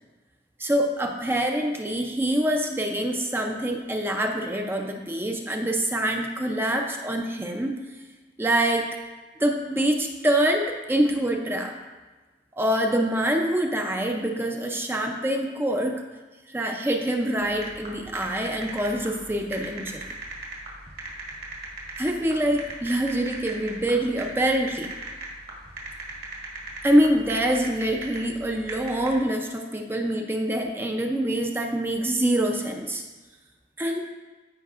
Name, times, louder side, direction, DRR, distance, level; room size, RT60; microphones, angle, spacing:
voice 1, 0.6-7.7 8.4-8.9 9.4-11.7 12.6-16.0 16.5-20.1 22.0-24.9 26.8-33.0 33.8-34.0, right 1 dB, 10° right, 2 dB, 0.5 m, -25 dB
sound 1, 17.4-29.2, right 2 dB, 55° right, 1.8 m, -38 dB
13.5 x 5.2 x 2.4 m, 1.3 s
head